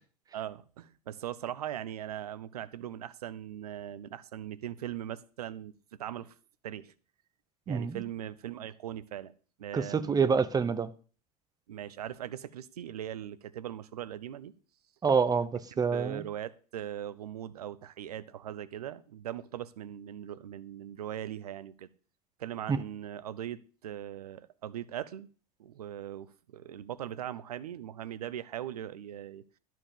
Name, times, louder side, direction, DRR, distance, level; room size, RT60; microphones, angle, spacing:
voice 1, 0.3-5.7 6.0-6.3 6.6-6.9 7.7-9.3 9.6-10.3 11.7-14.5 15.7-21.9 22.4-25.3 25.6-29.4, right 11 dB, 75° right, 0.6 m, -40 dB
voice 2, 7.7-8.0 9.7-10.9 15.0-16.2 22.7-22.8, right 5 dB, 20° right, 0.8 m, -27 dB
11.5 x 4.6 x 7.1 m
figure-of-eight pair, 75°, 20 cm